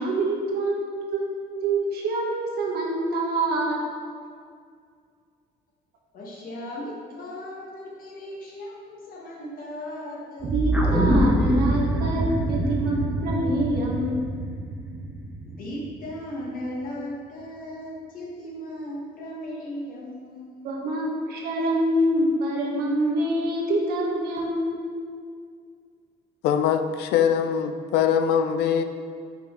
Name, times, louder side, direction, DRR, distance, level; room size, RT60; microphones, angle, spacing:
voice 1, 0.0-3.8 10.5-12.2 12.5-13.0 13.2-14.3 20.6-24.8, right 1 dB, 70° right, -2 dB, 1.3 m, -26 dB
voice 2, 6.1-10.6 15.4-21.2, left 1 dB, 55° left, -3 dB, 1.3 m, -37 dB
sound 1, 10.4-16.5, right 2 dB, 25° right, 0.5 m, -28 dB
sound 2, 10.7-15.3 15.7-15.8, equal, 5° right, 0.8 m, -26 dB
voice 3, 26.4-28.8, left 8 dB, 80° left, 8 dB, 0.5 m, -22 dB
5.6 x 4.0 x 4.3 m, 2.1 s
cardioid pair, 110°, 17 cm